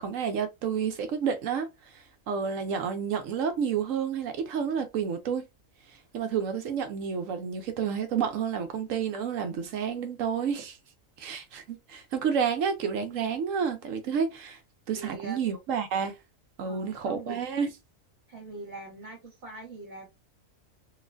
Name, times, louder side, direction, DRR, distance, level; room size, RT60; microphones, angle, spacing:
voice 1, 0.0-5.4 6.1-10.8 11.2-14.6 14.9-16.2 16.6-17.7, right 7 dB, 75° right, 1.0 m, -30 dB
voice 2, 15.0-15.4 16.6-17.4 18.3-20.1, right 3 dB, 55° right, 1.7 m, -42 dB
4.1 x 2.4 x 2.6 m
omnidirectional pair, 1.4 m